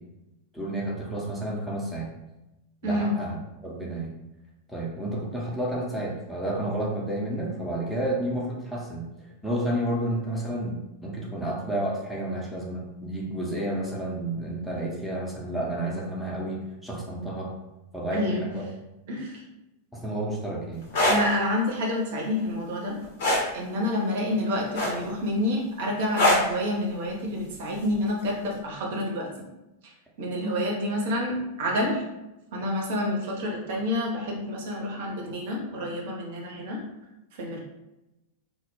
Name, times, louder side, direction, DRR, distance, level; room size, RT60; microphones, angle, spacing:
voice 1, 0.5-2.1 2.8-4.1 4.7-17.5 17.9-18.6 19.9-20.8, right 1 dB, 5° left, -4 dB, 0.5 m, -31 dB
voice 2, 2.8-3.1 18.1-18.4 19.1-19.4 21.1-23.0 23.5-29.3 30.2-32.0 32.5-36.8 37.4-37.6, left 1 dB, 55° right, -1 dB, 0.5 m, -28 dB
sound 1, 20.8-21.2 23.2-23.5 24.7-25.2 26.2-26.5 27.9-28.1, left 1 dB, 55° left, 0.8 m, -21 dB
2.1 x 2.0 x 3.0 m, 0.96 s
figure-of-eight pair, 90°, 0 cm